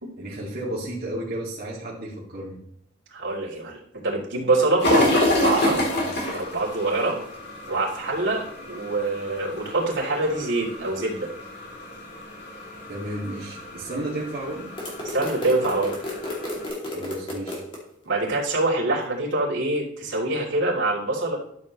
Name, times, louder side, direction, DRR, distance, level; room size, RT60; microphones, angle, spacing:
voice 1, 0.2-2.6 12.9-14.8 16.8-17.6, right 1 dB, 50° right, -8 dB, 2.5 m, -33 dB
voice 2, 3.1-5.9 6.3-7.2 7.7-11.3 15.0-15.9 18.0-21.4, right 2 dB, 70° right, -4 dB, 3.5 m, -25 dB
sound 1, 4.8-16.7, left 1 dB, 55° left, 3.5 m, -29 dB
sound 2, 14.8-17.8, left 1 dB, 25° left, 2.8 m, -33 dB
12.5 x 7.4 x 3.2 m, 0.71 s
head